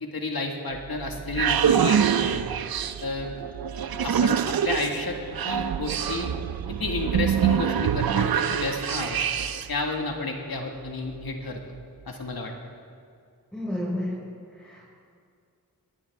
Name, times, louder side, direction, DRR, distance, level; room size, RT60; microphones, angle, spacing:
voice 1, 0.0-2.4 3.0-3.4 4.0-5.2 5.4-6.3 6.7-9.2 9.7-11.6 12.1-12.5, left 3 dB, 85° left, 2 dB, 2.0 m, -31 dB
sound 1, 0.8-9.8, right 8 dB, 80° right, 0.6 m, -25 dB
voice 2, 13.5-14.1 14.5-14.8, left 1 dB, 5° left, -8 dB, 5.4 m, -30 dB
23.0 x 17.5 x 3.6 m, 2.2 s
wide cardioid pair, 55°, 35 cm